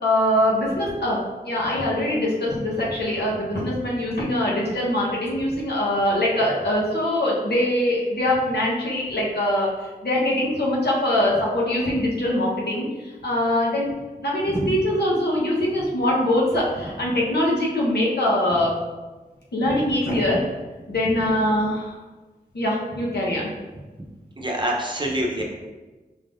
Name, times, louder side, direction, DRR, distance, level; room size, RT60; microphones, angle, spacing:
voice 1, 0.0-9.7 10.0-12.9 13.2-13.9 14.2-18.8 19.5-20.4 20.9-22.0 22.5-23.5, left 1 dB, 80° left, -4 dB, 1.1 m, -23 dB
voice 2, 24.4-25.4, right 1 dB, 30° right, -1 dB, 0.8 m, -25 dB
5.3 x 3.7 x 2.6 m, 1.2 s
wide cardioid pair, 70°, 17 cm